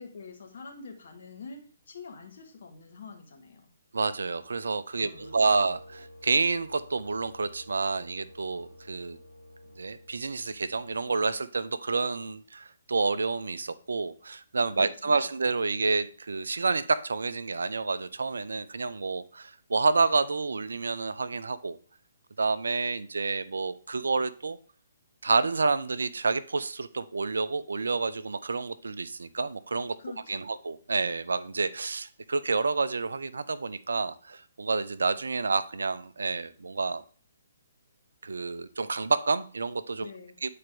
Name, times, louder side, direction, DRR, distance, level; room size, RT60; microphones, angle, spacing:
voice 1, 0.0-3.7 5.0-5.4 14.7-15.3 30.0-30.5 40.0-40.4, left 4 dB, 55° left, 2 dB, 1.6 m, -46 dB
voice 2, 3.9-9.2 9.8-21.8 22.4-24.6 25.2-30.0 30.3-37.0 38.2-40.1 40.4-40.5, right 4 dB, 65° right, 14 dB, 0.4 m, -29 dB
sound 1, 5.1-11.2, left 1 dB, 80° left, 1.1 m, -51 dB
8.7 x 4.2 x 3.5 m, 0.43 s
figure-of-eight pair, 130°, 0 cm